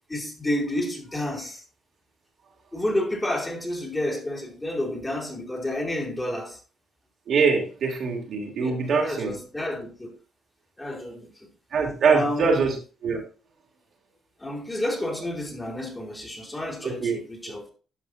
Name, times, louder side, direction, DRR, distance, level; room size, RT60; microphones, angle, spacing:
voice 1, 0.1-1.6 2.7-6.6 8.6-10.1 10.8-11.5 12.1-12.6 14.4-17.7, left 1 dB, 15° left, 2.7 m, -30 dB
voice 2, 7.3-9.4 11.7-12.8 13.0-13.2 16.8-17.2, right 5 dB, 65° right, 2.7 m, -23 dB
12.0 x 5.5 x 2.7 m
cardioid pair, 90°, 0 cm